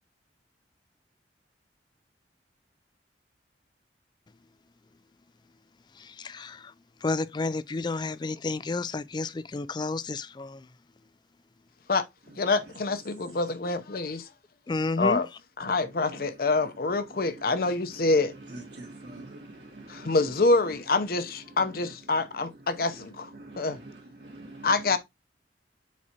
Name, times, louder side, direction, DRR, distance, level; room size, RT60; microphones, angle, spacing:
voice 1, 6.0-6.7 7.0-10.6 14.7-15.2, left 3 dB, 25° left, 0.3 m, -31 dB
voice 2, 12.4-14.3 15.0-15.3 15.6-18.4 19.9-23.3 23.6-23.8 24.6-25.0, left 3 dB, 55° left, 0.7 m, -26 dB
voice 3, 18.7-20.1 23.4-23.7 24.2-24.7, right 2 dB, 75° right, 1.9 m, -45 dB
7.4 x 4.8 x 2.8 m
head